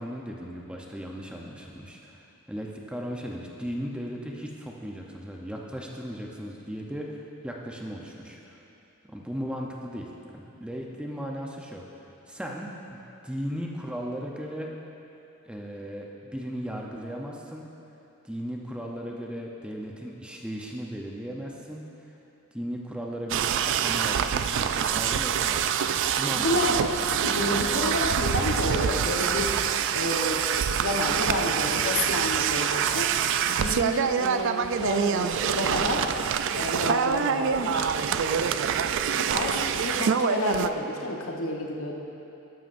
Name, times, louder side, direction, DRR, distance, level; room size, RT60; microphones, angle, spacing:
voice 1, 0.0-2.2 2.5-8.6 9.1-11.8 12.3-13.0 13.2-14.7 15.5-17.7 18.2-22.1 22.5-26.8, equal, 5° right, -1 dB, 0.6 m, -36 dB
sound 1, 23.3-40.7, right 8 dB, 55° right, 0.3 m, -26 dB
voice 2, 26.3-26.8 27.2-29.5 29.9-30.5 30.8-33.1 33.4-36.1 36.5-41.9, left 1 dB, 70° left, 0 dB, 1.1 m, -30 dB
12.5 x 11.5 x 2.6 m, 3.0 s
head